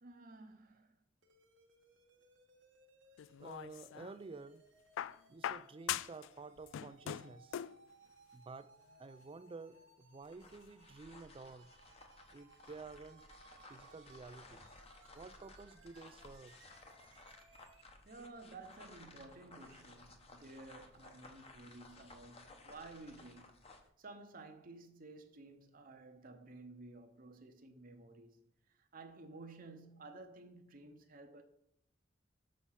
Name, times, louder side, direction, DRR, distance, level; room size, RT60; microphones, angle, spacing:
voice 1, 0.0-0.9 18.1-23.6 24.0-28.4 28.7-31.4, right 2 dB, 45° right, 0.9 m, -54 dB
sound 1, 1.2-17.8, right 3 dB, 65° right, 1.3 m, -65 dB
sound 2, 3.2-4.2 5.0-6.3 6.6-7.8 8.9-9.0, left 10 dB, 80° left, 0.3 m, -41 dB
voice 2, 3.4-4.6 5.3-7.6 8.3-8.7 9.0-11.7 12.3-13.3 13.7-14.7 15.1-16.6, right 3 dB, 30° right, 0.4 m, -51 dB
sound 3, 10.2-23.9, left 2 dB, 30° left, 1.0 m, -58 dB
6.7 x 6.4 x 5.7 m
head